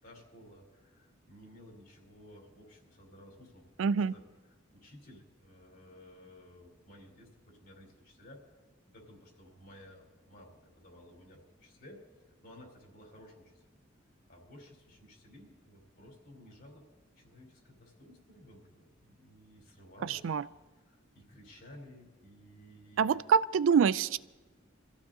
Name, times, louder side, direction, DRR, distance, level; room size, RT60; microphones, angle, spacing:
voice 1, 0.0-4.2 4.5-8.5 8.9-12.0 12.4-13.6 14.3-16.8 17.2-20.3 20.8-23.2, left 1 dB, 50° left, -1 dB, 4.1 m, -55 dB
voice 2, 3.8-4.1 20.0-20.4 23.0-24.2, right 6 dB, 75° right, 17 dB, 0.3 m, -26 dB
25.0 x 14.5 x 2.8 m, 1.2 s
head